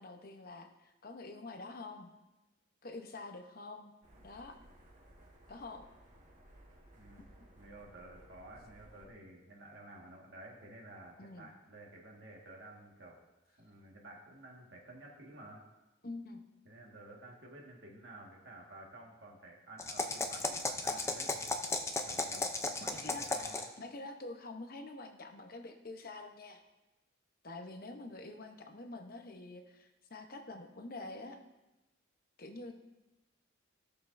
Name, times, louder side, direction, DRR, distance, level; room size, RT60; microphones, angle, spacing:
voice 1, 0.0-2.1 2.8-4.6 5.5-5.8 7.2-7.3 11.2-11.5 16.0-16.4 23.0-26.6 27.4-31.4 32.4-32.7, left 2 dB, 45° left, 5 dB, 0.9 m, -47 dB
sound 1, 4.0-9.1, right 1 dB, 40° right, 1.6 m, -59 dB
voice 2, 6.9-7.3 7.5-13.2 13.5-15.6 16.6-21.5 22.0-23.7, right 1 dB, 55° right, -2 dB, 1.7 m, -52 dB
sound 2, 19.8-23.8, left 3 dB, 15° left, 0.5 m, -35 dB
16.0 x 6.8 x 2.6 m, 1.0 s
head